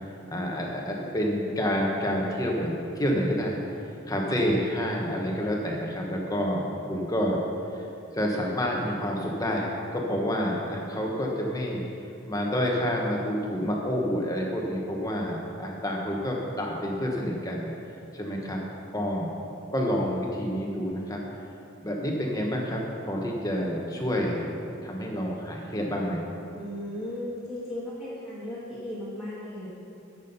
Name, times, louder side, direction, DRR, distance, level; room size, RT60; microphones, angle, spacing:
voice 1, 0.3-3.6 4.1-7.4 8.1-11.8 12.3-17.7 18.1-18.6 18.9-19.3 19.7-21.2 21.8-24.5 24.8-26.2, equal, 15° left, -1 dB, 1.2 m, -28 dB
voice 2, 26.5-29.7, left 1 dB, ahead, -10 dB, 1.5 m, -36 dB
13.5 x 6.3 x 5.5 m, 2.7 s
head